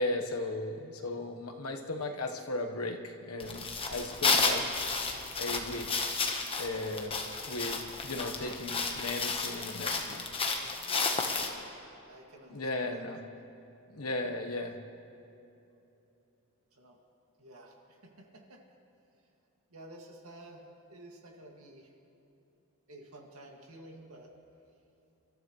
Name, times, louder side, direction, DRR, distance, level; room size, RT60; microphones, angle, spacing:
voice 1, 0.0-4.7 5.4-6.0 6.6-7.2 7.5-10.2 12.5-13.2 13.9-14.8, left 2 dB, 85° left, 3 dB, 1.3 m, -36 dB
sound 1, 3.4-11.5, left 4 dB, 25° left, 1.2 m, -32 dB
voice 2, 10.8-11.7 12.1-13.0 16.7-17.0 17.4-18.6 19.7-21.9 22.9-24.3, right 1 dB, 75° right, 0 dB, 2.2 m, -51 dB
27.5 x 13.0 x 3.2 m, 2.9 s
head